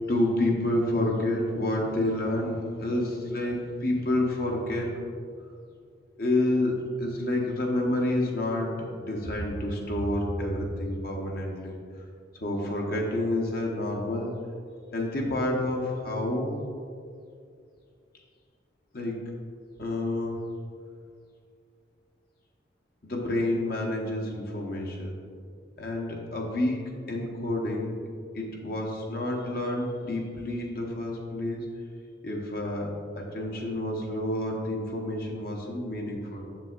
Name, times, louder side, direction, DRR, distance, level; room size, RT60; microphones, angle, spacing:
voice 1, 0.1-5.0 6.2-11.8 12.4-14.3 14.9-16.5 18.9-19.3 19.8-20.4 23.0-25.2 25.8-28.0 28.3-31.7 32.2-36.5, left 1 dB, 55° left, -1 dB, 1.0 m, -29 dB
7.3 x 7.2 x 2.5 m, 2.3 s
head